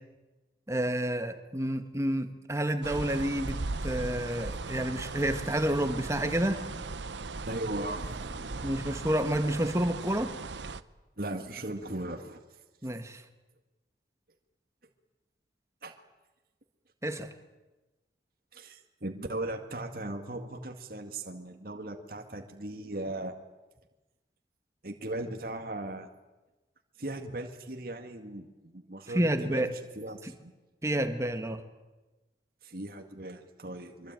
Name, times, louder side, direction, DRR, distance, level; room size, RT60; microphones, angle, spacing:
voice 1, 0.7-3.6 3.8-6.6 8.6-10.3 12.8-13.2 17.0-17.3 29.1-29.7 30.2-30.3 30.8-31.6, right 1 dB, 15° right, 7 dB, 1.8 m, -29 dB
sound 1, 2.8-10.8, right 3 dB, 80° right, 0.9 m, -38 dB
voice 2, 7.5-8.7 11.2-12.4 15.8-15.9 18.5-23.3 24.8-26.1 27.0-29.7 30.0-30.5 32.6-34.1, right 1 dB, 55° right, 4 dB, 2.1 m, -38 dB
24.5 x 24.5 x 9.2 m, 1.1 s
head